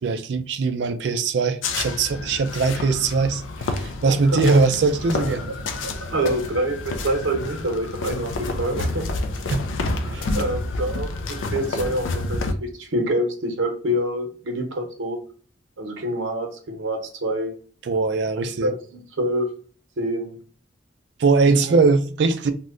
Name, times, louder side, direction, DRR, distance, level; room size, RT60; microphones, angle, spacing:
voice 1, 0.0-5.5 9.5-9.7 10.1-10.3 17.8-18.7 21.2-22.5, right 4 dB, 60° right, 0.4 m, -21 dB
sound 1, 1.6-12.5, left 2 dB, 80° left, 0.4 m, -29 dB
voice 2, 4.1-4.4 5.8-9.1 10.3-15.2 15.8-17.5 18.3-19.5 20.0-20.4 21.5-21.8, right 1 dB, 85° right, 0.7 m, -26 dB
2.8 x 2.1 x 3.7 m
head